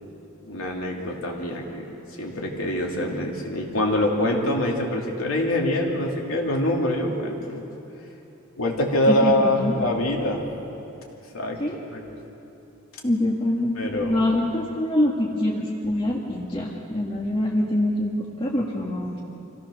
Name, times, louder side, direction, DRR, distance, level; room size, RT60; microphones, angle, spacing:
voice 1, 0.4-7.6 8.6-10.4 11.3-11.6 11.9-12.0 13.8-14.3, left 1 dB, 80° left, -1 dB, 2.8 m, -25 dB
voice 2, 9.1-9.7 11.6-11.8 13.0-19.2, left 1 dB, 25° left, -3 dB, 1.6 m, -25 dB
25.5 x 16.5 x 6.4 m, 2.9 s
head